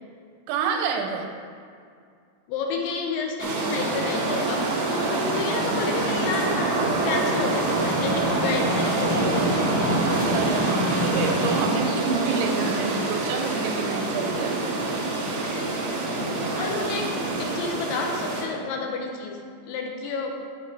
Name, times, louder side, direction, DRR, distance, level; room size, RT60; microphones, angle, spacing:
voice 1, 0.5-1.3 10.3-14.6, right 5 dB, 85° right, 3 dB, 3.0 m, -28 dB
voice 2, 2.5-9.9 15.4-15.8 16.6-20.4, left 4 dB, 85° left, 2 dB, 3.1 m, -31 dB
sound 1, 3.4-18.4, right 2 dB, 60° right, 2.0 m, -26 dB
Snare drum, 7.3-11.8, left 1 dB, 55° left, 3.0 m, -30 dB
8.5 x 5.8 x 4.7 m, 2.3 s
omnidirectional pair, 5.3 m